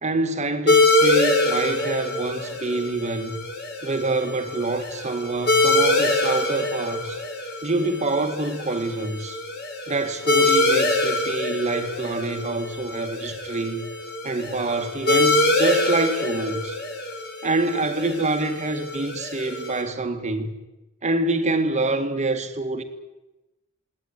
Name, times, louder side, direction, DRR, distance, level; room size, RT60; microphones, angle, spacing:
voice 1, 0.0-3.4 3.8-7.2 7.6-9.4 9.9-13.9 14.2-16.8 17.4-20.5 21.0-22.8, right 2 dB, 35° right, 1.9 m, -26 dB
sound 1, 0.7-19.8, left 2 dB, 50° left, 5.8 m, -24 dB
21.5 x 18.0 x 9.9 m
head